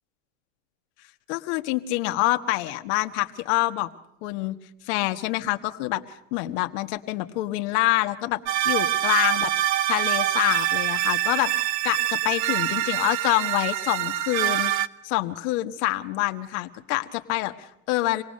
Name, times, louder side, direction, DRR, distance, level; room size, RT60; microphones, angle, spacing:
voice 1, 1.3-3.9 4.2-4.6 4.9-6.0 6.3-8.4 8.6-9.5 9.9-14.7 15.0-18.2, left 18 dB, 55° left, 8 dB, 1.5 m, -26 dB
sound 1, 8.5-14.9, right 13 dB, 55° right, 1.0 m, -25 dB
26.0 x 18.5 x 6.6 m, 0.79 s
supercardioid pair, 130°, 40 cm